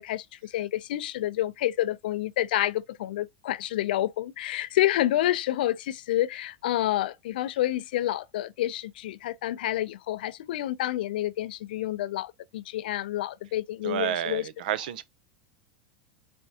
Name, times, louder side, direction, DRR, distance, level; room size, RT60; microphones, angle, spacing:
voice 1, 0.0-14.5, left 14 dB, 80° left, 0.4 m, -29 dB
voice 2, 13.8-15.0, right 10 dB, 70° right, 0.6 m, -30 dB
4.2 x 3.5 x 2.8 m
supercardioid pair, 180°, 5 cm